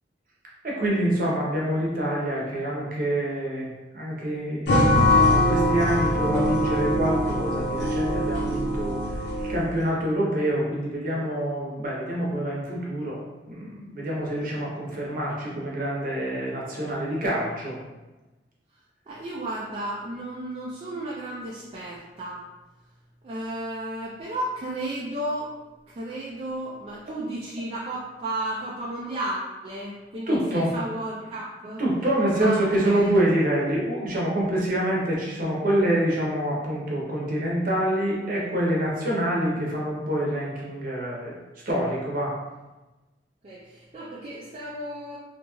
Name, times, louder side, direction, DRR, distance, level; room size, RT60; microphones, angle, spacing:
voice 1, 0.6-9.0 9.4-13.2 13.5-17.8 30.3-30.7 31.8-41.3 41.7-42.3, right 1 dB, 50° right, -4 dB, 0.7 m, -26 dB
sound 1, 4.7-9.8, left 1 dB, 70° left, 0.6 m, -22 dB
voice 2, 19.1-22.4 23.2-25.5 25.9-31.8 32.4-33.1 43.4-45.2, right 1 dB, 35° right, -5 dB, 0.3 m, -33 dB
2.7 x 2.3 x 2.9 m, 1.1 s
head